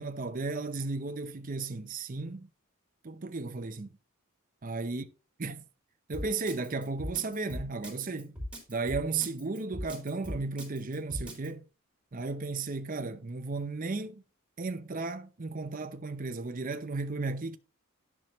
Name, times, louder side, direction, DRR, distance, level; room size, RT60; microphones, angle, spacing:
voice 1, 0.0-2.5 3.0-3.9 4.6-5.0 5.4-5.6 6.1-8.4 8.7-11.6 12.1-14.2 14.6-17.6, right 3 dB, 40° right, 0.6 m, -34 dB
Drum kit, 6.1-11.5, equal, 5° right, 3.0 m, -39 dB
10.5 x 6.2 x 3.1 m
head